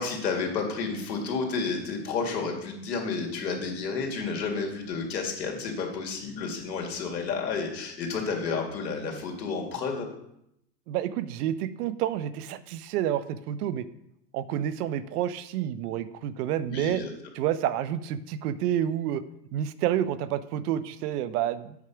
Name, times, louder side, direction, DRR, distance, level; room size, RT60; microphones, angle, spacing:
voice 1, 0.0-10.1 16.7-17.1, left 4 dB, 85° left, 1 dB, 2.2 m, -31 dB
voice 2, 10.9-13.9 14.3-17.0 17.3-19.2 19.5-21.8, right 11 dB, 65° right, 15 dB, 0.7 m, -29 dB
8.3 x 4.8 x 5.7 m, 0.78 s
hypercardioid pair, 115°, 49 cm